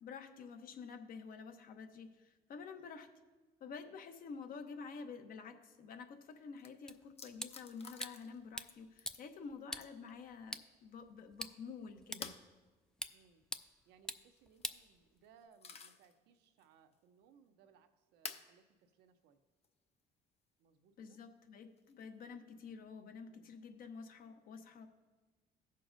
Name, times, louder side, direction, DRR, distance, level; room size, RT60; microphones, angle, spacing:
voice 1, 0.0-3.1 3.6-12.3 21.0-24.9, left 5 dB, 55° left, 7 dB, 0.9 m, -49 dB
sound 1, 6.2-6.3 6.6-6.7 7.2-8.4 8.7-9.3 9.8-10.1 12.2-12.5 14.4-14.8 15.2-16.1 16.6-16.7 18.2-18.5 19.6-19.7 21.8-22.2, left 5 dB, 40° left, 0.6 m, -50 dB
sound 2, 6.9-15.5, left 1 dB, 5° left, 0.3 m, -49 dB
voice 2, 13.1-13.4 13.9-19.4 20.6-21.2 23.3-23.5, right 7 dB, 85° right, 8 dB, 0.8 m, -67 dB
15.5 x 6.6 x 2.6 m, 1.3 s
cardioid pair, 110°, 17 cm